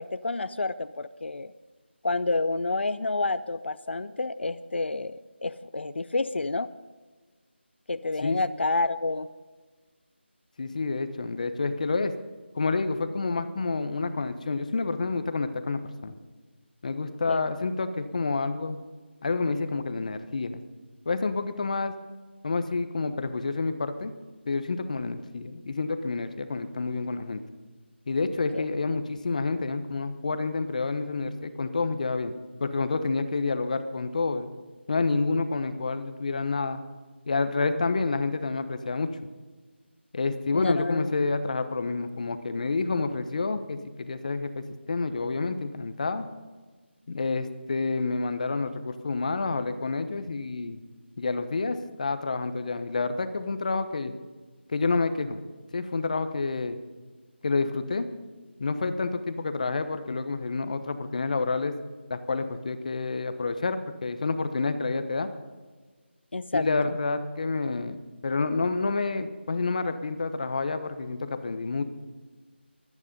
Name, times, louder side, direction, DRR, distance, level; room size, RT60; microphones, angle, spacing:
voice 1, 0.0-1.5 2.0-6.7 7.9-9.3 17.3-17.4 28.5-28.7 40.5-41.1 66.3-66.9, left 3 dB, 65° left, 14 dB, 0.6 m, -29 dB
voice 2, 10.6-12.1 12.5-16.1 16.8-18.8 19.2-20.6 21.0-21.9 22.4-24.1 24.5-27.4 28.1-32.3 32.6-34.5 34.9-36.8 37.3-39.1 40.1-46.3 47.1-50.8 51.2-54.1 54.7-55.4 55.7-56.8 57.4-58.1 58.6-61.8 62.1-65.3 66.5-68.0 68.2-71.8, left 3 dB, 40° left, 10 dB, 1.0 m, -28 dB
23.0 x 9.7 x 5.4 m, 1.4 s
figure-of-eight pair, 170°, 6 cm